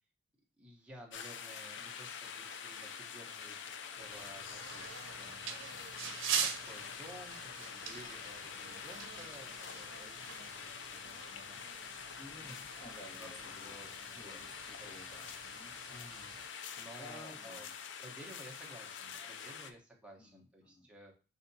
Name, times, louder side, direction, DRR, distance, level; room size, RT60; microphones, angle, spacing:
voice 1, 0.6-3.7 4.0-11.8 12.2-12.6 13.0-14.4 14.8-15.0 15.9-17.7 18.0-21.1, right 1 dB, 5° right, -2 dB, 0.9 m, -55 dB
sound 1, 1.1-19.7, left 7 dB, 65° left, 0.4 m, -46 dB
sound 2, 4.0-16.5, right 7 dB, 85° right, 0.6 m, -44 dB
voice 2, 12.2-13.7 14.1-15.7 17.0-17.7 20.2-20.9, left 1 dB, 25° left, 0 dB, 1.1 m, -54 dB
5.7 x 2.7 x 2.7 m, 0.34 s
head